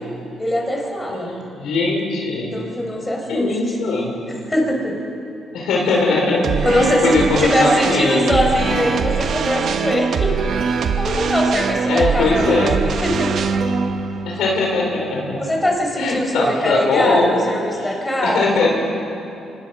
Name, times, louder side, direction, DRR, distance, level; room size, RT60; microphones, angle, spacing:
voice 1, 0.4-1.3 2.5-3.8 4.3-4.9 6.6-10.4 10.9-13.4 15.4-18.7, left 1 dB, 15° left, 0 dB, 4.8 m, -22 dB
voice 2, 1.1-2.6 3.3-4.2 5.5-8.5 11.9-12.8 14.2-15.4 15.9-17.3 17.8-17.9 18.2-18.7, left 3 dB, 80° left, -1 dB, 4.8 m, -20 dB
sound 1, 6.4-15.6, right 5 dB, 65° right, 1.4 m, -23 dB
26.5 x 19.5 x 6.2 m, 2.8 s
cardioid pair, 90°, 0 cm